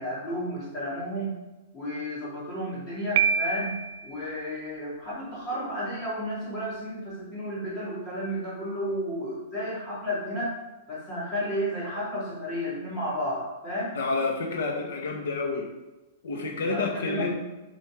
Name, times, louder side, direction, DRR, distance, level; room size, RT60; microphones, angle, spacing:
voice 1, 0.0-1.3 1.7-3.7 4.0-10.5 10.9-14.0 16.6-17.4, equal, 15° left, -8 dB, 3.0 m, -32 dB
Piano, 3.2-4.1, right 7 dB, 45° right, 0.4 m, -26 dB
voice 2, 13.9-15.7 16.2-17.4, left 3 dB, 75° left, 1 dB, 1.6 m, -29 dB
8.5 x 5.2 x 5.1 m, 1.0 s
supercardioid pair, 180°, 0 cm